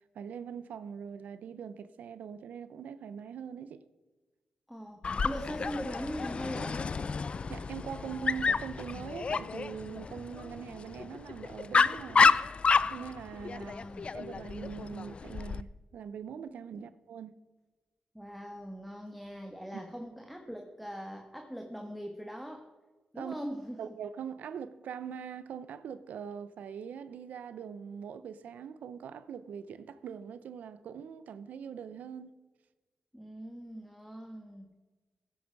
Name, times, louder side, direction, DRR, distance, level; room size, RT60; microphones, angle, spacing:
voice 1, 0.0-3.8 7.5-12.4 12.9-13.7 14.1-17.4 19.7-19.8 23.2-23.4 23.8-32.4, right 7 dB, 90° right, 0.6 m, -42 dB
voice 2, 4.7-6.9 13.6-14.1 16.7-16.9 18.1-22.7 23.1-23.8 33.1-34.7, equal, ahead, 1.3 m, -41 dB
Dog, 5.0-15.6, left 5 dB, 45° left, 0.4 m, -30 dB
16.0 x 9.2 x 4.7 m
cardioid pair, 80°, 3 cm